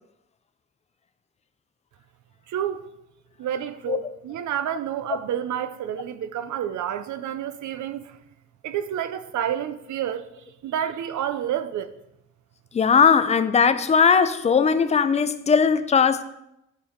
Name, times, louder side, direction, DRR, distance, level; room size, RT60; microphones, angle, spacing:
voice 1, 2.5-2.8 3.4-8.2 8.6-10.3 10.6-11.9, right 10 dB, 80° right, 0.7 m, -29 dB
voice 2, 12.7-16.2, left 6 dB, 25° left, 0.4 m, -19 dB
11.0 x 4.5 x 5.0 m
wide cardioid pair, 170°, 29 cm